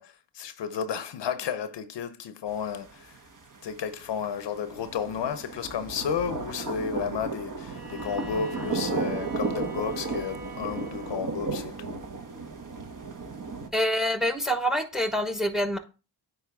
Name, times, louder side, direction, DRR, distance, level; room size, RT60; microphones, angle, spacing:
voice 1, 0.0-3.2 3.6-12.0, left 7 dB, 65° left, 0.7 m, -32 dB
sound 1, 2.5-13.7, right 3 dB, 40° right, 1.3 m, -34 dB
Bowed string instrument, 7.6-11.4, right 3 dB, 20° right, 3.6 m, -46 dB
voice 2, 13.7-15.8, equal, ahead, 1.0 m, -26 dB
9.2 x 3.2 x 3.5 m
supercardioid pair, 50°, 46 cm